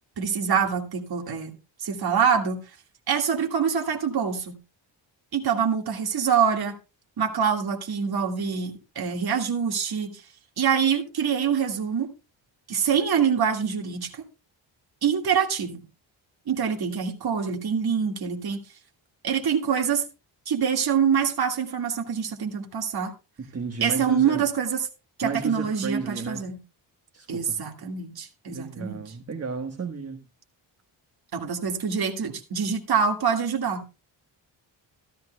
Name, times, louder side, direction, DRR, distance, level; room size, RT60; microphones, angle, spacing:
voice 1, 0.2-2.6 3.1-4.6 5.3-6.8 7.2-10.2 10.6-12.1 12.7-14.2 15.0-15.8 16.5-18.6 19.2-20.1 20.5-23.1 23.8-24.8 25.2-26.6 27.3-29.0 31.3-33.8, right 7 dB, 55° right, 1.9 m, -25 dB
voice 2, 23.4-24.5 25.2-26.4 27.1-27.6 28.5-30.2, right 5 dB, 30° right, 1.3 m, -32 dB
14.0 x 13.5 x 2.2 m
cardioid pair, 90°, 46 cm